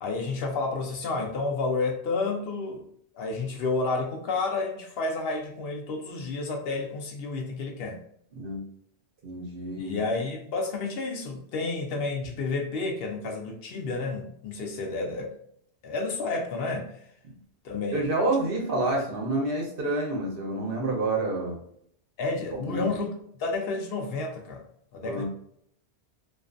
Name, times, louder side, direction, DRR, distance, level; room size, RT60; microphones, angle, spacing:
voice 1, 0.0-2.9 3.1-8.0 9.8-15.3 15.8-16.9 17.6-18.1 22.2-23.1 23.4-24.6 24.9-25.2, left 3 dB, 70° left, 2 dB, 0.7 m, -30 dB
voice 2, 9.2-10.0 17.9-21.6 22.6-22.9 25.0-25.2, right 2 dB, 60° right, -1 dB, 0.9 m, -28 dB
2.5 x 2.3 x 2.4 m, 0.68 s
omnidirectional pair, 1.1 m